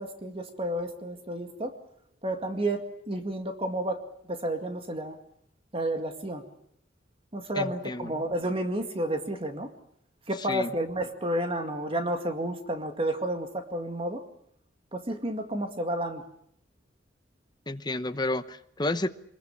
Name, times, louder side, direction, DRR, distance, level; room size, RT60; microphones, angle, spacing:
voice 1, 0.0-1.8 2.2-4.0 4.3-5.2 5.7-6.4 7.3-9.7 10.3-14.2 14.9-16.2, right 1 dB, 30° right, 6 dB, 2.1 m, -31 dB
voice 2, 7.5-8.1 10.5-10.7 17.7-19.1, left 2 dB, 25° left, 10 dB, 0.9 m, -30 dB
23.5 x 21.5 x 7.3 m, 0.68 s
head